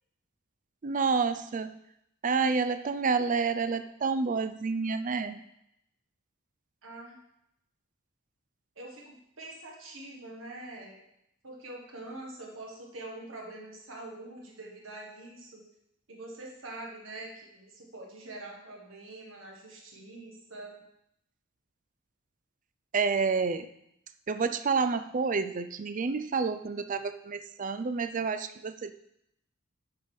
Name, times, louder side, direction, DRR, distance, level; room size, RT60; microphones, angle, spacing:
voice 1, 0.8-1.7 2.2-5.4 22.9-23.7 24.3-28.9, right 5 dB, 40° right, 11 dB, 0.4 m, -29 dB
voice 2, 6.8-7.1 8.7-11.0 11.4-15.6 16.1-20.7, right 2 dB, 70° right, -1 dB, 1.6 m, -44 dB
8.9 x 5.2 x 5.4 m, 0.79 s
head